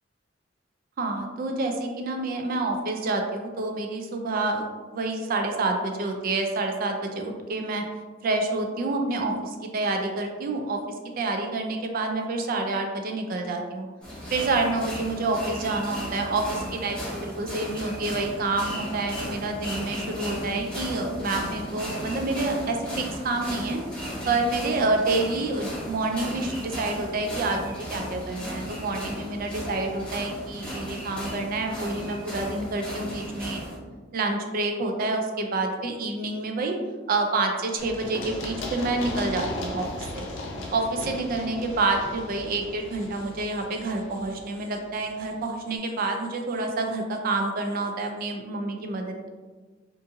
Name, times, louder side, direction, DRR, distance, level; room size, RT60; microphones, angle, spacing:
voice 1, 1.0-7.8 8.2-10.8 11.2-13.9 14.3-23.8 24.3-33.6 34.1-36.7 37.1-40.3 40.7-49.3, right 2 dB, 50° right, 3 dB, 0.4 m, -28 dB
sound 1, 14.0-33.8, equal, 5° left, 0.8 m, -35 dB
Run, 37.8-45.4, left 2 dB, 75° left, 0.5 m, -37 dB
2.6 x 2.5 x 2.6 m, 1.4 s
head